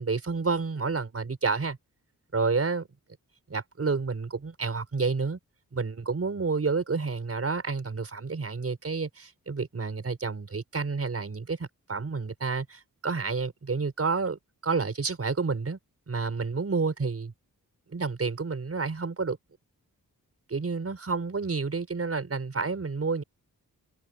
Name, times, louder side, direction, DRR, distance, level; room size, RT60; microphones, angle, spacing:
voice 1, 0.0-1.8 2.3-2.9 3.5-5.4 5.7-15.8 16.1-17.3 17.9-19.4 20.5-23.2, right 4 dB, 40° right, 5.4 m, -29 dB
wide cardioid pair, 165°, 35 cm